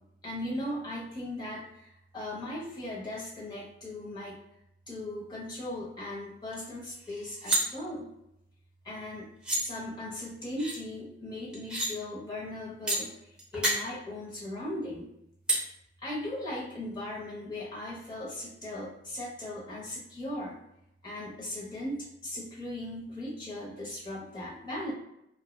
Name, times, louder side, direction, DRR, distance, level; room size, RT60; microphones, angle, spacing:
voice 1, 0.2-4.4 4.9-8.1 8.8-9.3 9.6-13.1 13.5-15.1 16.0-20.6 21.0-24.9, left 1 dB, 25° left, -5 dB, 0.8 m, -38 dB
sound 1, 6.5-6.6 7.0-7.6 9.0-9.1 9.4-9.6 10.6-10.8 11.5-11.9 12.9-13.0 13.4-13.8 15.5-15.6, right 2 dB, 5° right, 0.5 m, -29 dB
2.6 x 2.2 x 2.2 m, 0.80 s
head